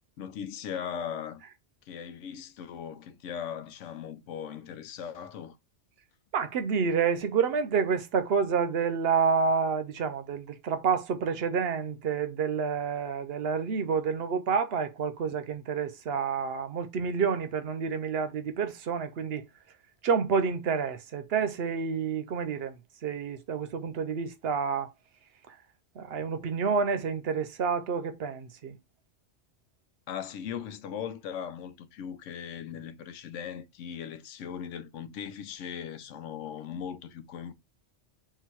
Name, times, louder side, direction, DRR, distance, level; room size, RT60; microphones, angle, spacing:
voice 1, 0.2-1.4 1.9-5.6 30.1-37.5, left 8 dB, 85° left, 1.0 m, -39 dB
voice 2, 6.3-19.4 20.0-22.8 23.0-24.9 25.5-25.6 26.0-28.8, right 6 dB, 60° right, 0.8 m, -29 dB
3.8 x 2.6 x 4.3 m
omnidirectional pair, 1.2 m